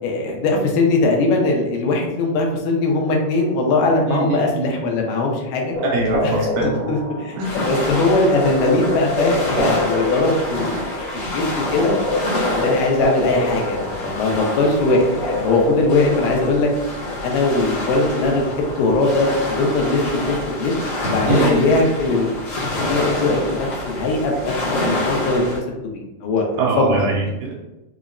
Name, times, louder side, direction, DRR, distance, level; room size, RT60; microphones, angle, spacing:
voice 1, 0.0-5.8 6.2-6.5 6.9-11.1 11.3-11.4 11.7-12.0 12.5-16.7 17.2-18.5 18.8-20.7 21.0-26.5 26.8-27.0, left 2 dB, 85° left, 0 dB, 2.3 m, -20 dB
voice 2, 4.1-4.7 5.8-6.8 7.4-7.6 11.2-11.3 21.3-21.7 26.6-27.6, right 3 dB, 80° right, -1 dB, 1.8 m, -23 dB
sound 1, 5.7-16.1, left 1 dB, 55° right, 1.3 m, -26 dB
sound 2, 7.4-25.6, left 1 dB, 60° left, 1.6 m, -27 dB
5.5 x 2.0 x 2.4 m, 1.0 s
omnidirectional pair, 3.9 m